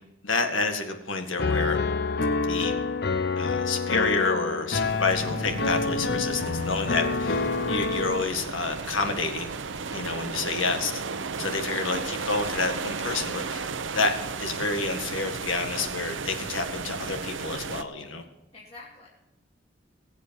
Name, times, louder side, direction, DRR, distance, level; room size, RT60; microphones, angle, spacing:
voice 1, 0.2-1.8 2.4-2.8 3.4-9.5 9.9-11.0 11.4-13.7 13.9-14.1 14.4-18.2, left 3 dB, 85° left, 6 dB, 1.9 m, -29 dB
Piano, 1.4-8.2, left 4 dB, 55° left, 0.6 m, -27 dB
sound 1, 4.8-17.8, right 4 dB, 75° right, 0.8 m, -34 dB
voice 2, 10.0-10.4 18.5-19.1, left 3 dB, 35° left, -6 dB, 2.8 m, -47 dB
21.5 x 8.3 x 4.7 m, 0.96 s
head